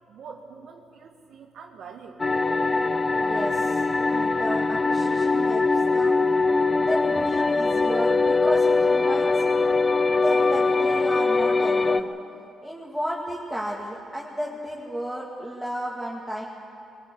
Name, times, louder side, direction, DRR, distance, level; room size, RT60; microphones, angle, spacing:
voice 1, 0.1-2.2, right 5 dB, 70° right, 0 dB, 1.5 m, -44 dB
sound 1, 2.2-12.0, left 3 dB, 25° left, 0.7 m, -22 dB
voice 2, 3.2-3.8 4.1-6.2 6.8-9.5 10.0-12.1 12.6-16.4, equal, ahead, -4 dB, 2.3 m, -32 dB
22.5 x 16.5 x 8.4 m, 2.6 s
cardioid pair, 90°, 0 cm